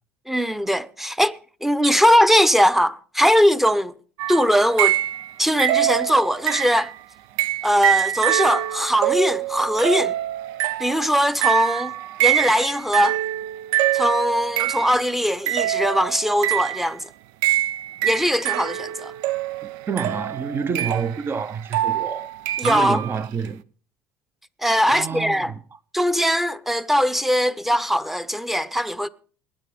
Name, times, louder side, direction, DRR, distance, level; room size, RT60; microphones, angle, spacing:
voice 1, 0.3-3.9 4.3-5.0 5.4-6.9 7.6-10.2 10.8-11.9 12.2-13.2 13.9-17.1 18.0-19.1 22.6-23.0 24.6-25.5 25.9-29.1, equal, 5° right, 1.0 m, -20 dB
sound 1, 4.2-5.3 5.6-6.9 7.4-15.0 15.5-16.9 17.4-23.2, right 13 dB, 75° right, 0.7 m, -25 dB
voice 2, 19.6-22.3 22.6-23.6 24.9-25.6, right 6 dB, 35° right, 1.1 m, -28 dB
20.0 x 10.5 x 5.1 m
supercardioid pair, 90°, 7 cm